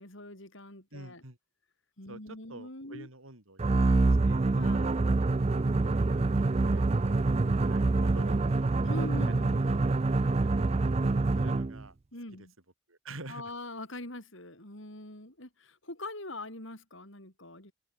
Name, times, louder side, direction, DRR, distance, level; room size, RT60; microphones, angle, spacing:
voice 1, 0.0-1.2 2.0-3.1 4.6-4.9 8.8-9.9 12.1-12.5 13.3-17.7, left 1 dB, 60° left, 5.9 m, -43 dB
voice 2, 0.9-1.4 2.1-4.5 5.5-8.5 9.0-10.0 10.4-11.0 11.4-12.0 12.3-12.5 12.9-13.5, right 2 dB, 70° right, 4.6 m, -49 dB
sound 1, 3.6-11.8, right 3 dB, 30° right, 0.4 m, -26 dB
head